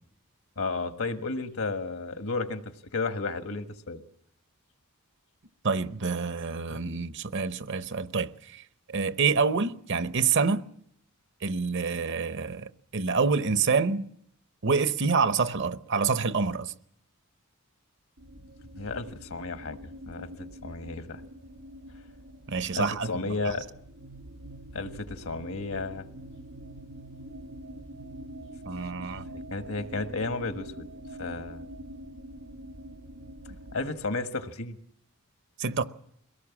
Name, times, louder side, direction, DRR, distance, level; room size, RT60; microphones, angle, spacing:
voice 1, 0.6-2.6 2.9-4.0 18.7-19.8 20.1-21.2 22.7-23.7 24.7-26.1 29.5-30.8 31.2-31.6 33.7-34.8, left 3 dB, 70° left, 1.6 m, -33 dB
voice 2, 5.6-8.6 8.9-10.6 11.4-14.1 14.6-16.7 22.5-23.5 28.6-29.2 35.6-35.8, right 5 dB, 55° right, 0.8 m, -27 dB
sound 1, 18.2-34.1, right 1 dB, 75° right, 1.6 m, -45 dB
23.0 x 18.0 x 7.2 m
head